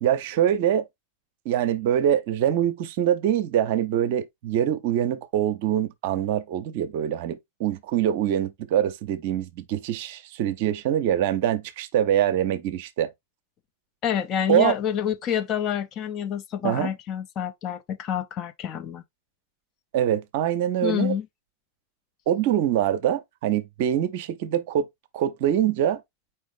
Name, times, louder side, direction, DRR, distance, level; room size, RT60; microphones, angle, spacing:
voice 1, 0.0-0.9 1.4-13.1 14.5-14.7 16.6-16.9 19.9-21.1 22.3-24.9 25.1-26.0, right 10 dB, 50° right, 0.6 m, -24 dB
voice 2, 14.0-19.0 20.8-21.3, left 9 dB, 35° left, 0.6 m, -27 dB
4.5 x 3.3 x 3.2 m
figure-of-eight pair, 90°, 0 cm